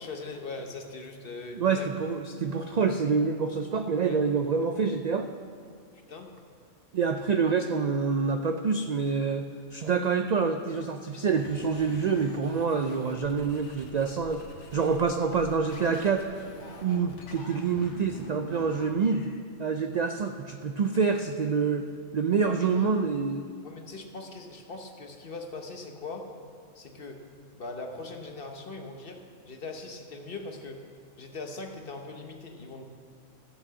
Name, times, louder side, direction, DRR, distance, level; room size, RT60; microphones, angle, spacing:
voice 1, 0.0-2.1 4.0-4.2 6.1-6.4 22.4-22.9 23.6-26.3 26.7-27.2 27.6-30.8 31.2-32.8, left 3 dB, 50° left, 4 dB, 1.2 m, -40 dB
voice 2, 1.5-5.3 6.9-14.4 14.7-16.3 16.8-19.3 19.6-21.9 22.1-23.4, right 5 dB, 60° right, 6 dB, 0.4 m, -27 dB
sound 1, 11.3-19.4, left 2 dB, 65° left, 1.6 m, -46 dB
14.0 x 6.1 x 7.6 m, 2.2 s
omnidirectional pair, 1.3 m